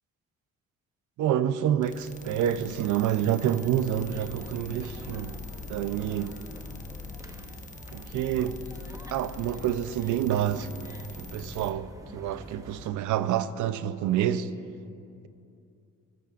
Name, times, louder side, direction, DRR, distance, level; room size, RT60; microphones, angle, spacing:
voice 1, 1.2-5.4 5.7-6.4 7.9-8.6 9.1-14.5, right 10 dB, 80° right, 0.6 m, -28 dB
sound 1, 1.8-11.7, left 4 dB, 25° left, 1.2 m, -43 dB
sound 2, 3.3-12.9, right 1 dB, 10° right, 0.8 m, -47 dB
28.0 x 15.0 x 2.5 m
cardioid pair, 90°, 30 cm